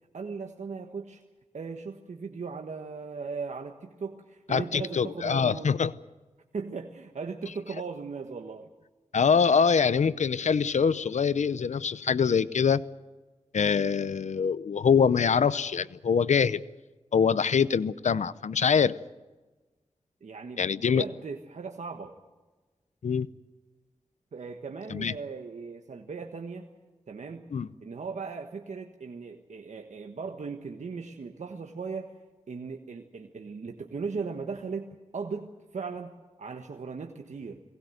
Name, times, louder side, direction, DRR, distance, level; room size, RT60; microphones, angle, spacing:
voice 1, 0.1-1.2 1.5-5.7 6.5-8.7 20.2-22.2 24.3-26.7 27.1-27.5 27.8-32.1 32.5-37.6, right 5 dB, 85° right, 4 dB, 1.4 m, -38 dB
voice 2, 4.5-5.9 9.1-12.8 13.5-16.6 17.1-18.9 20.6-21.0 23.0-23.3 24.9-25.1 27.5-27.7, left 6 dB, 85° left, 17 dB, 0.6 m, -24 dB
22.5 x 19.0 x 7.9 m, 1.2 s
wide cardioid pair, 60°, 12 cm